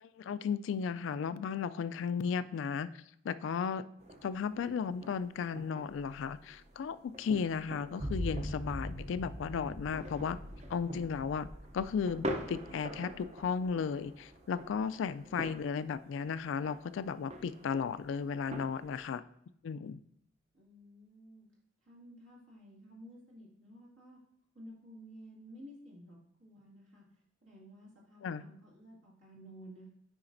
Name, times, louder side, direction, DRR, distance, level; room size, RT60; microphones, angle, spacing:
voice 1, 0.0-2.9 3.2-3.8 4.2-10.4 10.7-11.5 11.7-19.2 19.6-20.0 28.2-28.4, left 6 dB, 70° left, 14 dB, 0.3 m, -35 dB
sound 1, 4.0-19.0, equal, 35° right, 0.6 m, -46 dB
sound 2, 8.0-15.4, equal, 50° right, 1.5 m, -43 dB
voice 2, 20.5-21.5 21.9-24.2 24.5-27.0 27.4-29.9, equal, 75° right, -4 dB, 2.2 m, -53 dB
8.7 x 5.0 x 2.6 m, 0.71 s
head